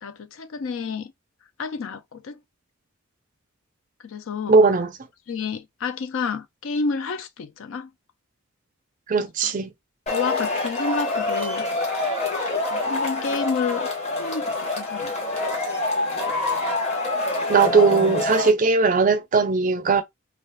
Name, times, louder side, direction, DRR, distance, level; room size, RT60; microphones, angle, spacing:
voice 1, 0.0-1.1 1.6-2.4 4.0-4.6 5.3-7.9 9.4-9.5 10.1-11.7 12.7-13.9 14.2-15.1, left 5 dB, 65° left, 0.4 m, -29 dB
voice 2, 4.5-4.9 9.1-9.7 17.5-20.0, right 4 dB, 35° right, 0.4 m, -18 dB
Male speech man speaking / Shout / Clapping, 10.1-18.5, left 2 dB, 30° left, 0.8 m, -26 dB
2.3 x 2.3 x 3.2 m
head